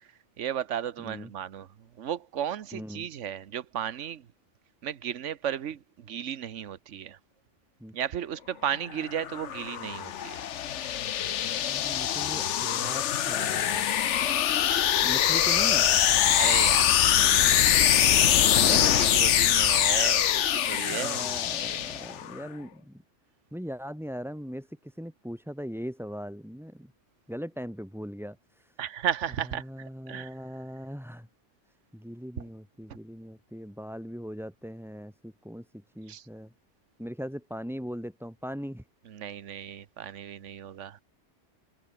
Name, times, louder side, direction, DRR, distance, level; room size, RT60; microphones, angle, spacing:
voice 1, 0.4-1.7 2.0-4.2 4.8-7.2 7.9-10.5 16.4-16.9 17.9-18.1 18.5-21.2 28.8-30.4 32.4-32.5 36.1-36.3 39.1-41.0, right 9 dB, 85° right, 1.3 m, -34 dB
voice 2, 1.0-1.3 2.7-3.1 7.8-7.9 11.2-13.9 15.0-15.9 18.5-18.8 20.9-23.0 23.5-26.9 27.3-28.7 29.6-31.3 31.9-35.6 35.9-36.5 37.0-38.8, equal, ahead, 3.2 m, -39 dB
sound 1, 8.9-22.4, left 10 dB, 75° left, 1.1 m, -24 dB
omnidirectional pair, 1.2 m